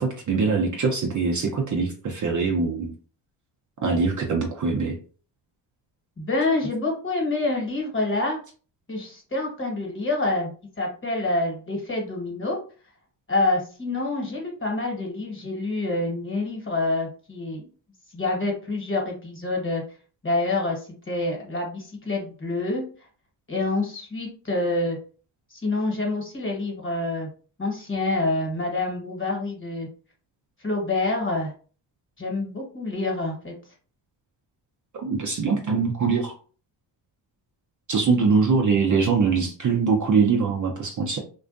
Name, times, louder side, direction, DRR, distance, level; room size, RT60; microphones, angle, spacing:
voice 1, 0.0-2.9 3.8-5.0 35.0-36.3 37.9-41.2, right 5 dB, 40° right, 1 dB, 0.6 m, -23 dB
voice 2, 6.2-8.4 8.9-12.6 13.3-17.7 18.1-19.8 20.2-22.8 23.5-25.0 25.5-27.3 27.6-29.9 30.6-31.5 32.2-33.5, left 2 dB, 25° left, 0 dB, 1.2 m, -27 dB
2.4 x 2.2 x 2.5 m, 0.39 s
supercardioid pair, 60°, 50 cm